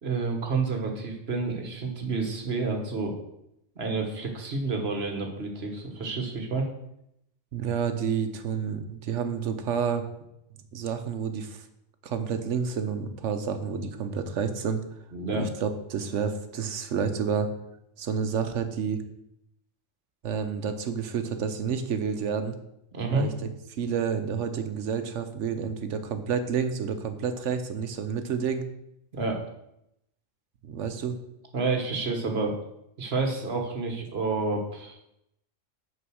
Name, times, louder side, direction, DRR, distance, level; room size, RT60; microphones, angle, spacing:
voice 1, 0.0-3.1 3.7-6.7 15.1-15.5 22.9-23.3 29.1-29.4 31.5-32.6 33.0-35.0, right 3 dB, 55° right, 3 dB, 1.6 m, -29 dB
voice 2, 7.5-10.0 10.7-11.7 12.0-14.8 15.3-17.5 18.0-19.0 20.2-22.6 23.1-23.3 23.8-28.7 30.6-31.2, right 6 dB, 75° right, 8 dB, 1.1 m, -29 dB
6.4 x 5.1 x 6.3 m, 0.81 s
omnidirectional pair, 1.3 m